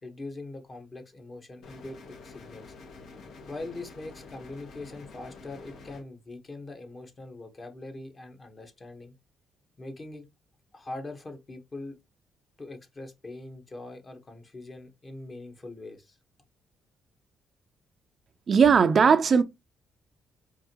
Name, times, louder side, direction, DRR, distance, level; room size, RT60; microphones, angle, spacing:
voice 1, 0.0-2.7 3.5-9.1 9.8-10.3 10.7-12.0 12.6-16.2, left 2 dB, 35° left, 1.1 m, -42 dB
sound 1, 1.6-6.0, left 4 dB, 70° left, 1.1 m, -48 dB
voice 2, 18.5-19.4, right 6 dB, 50° right, 0.4 m, -18 dB
4.7 x 2.5 x 2.8 m
cardioid pair, 90°, 0 cm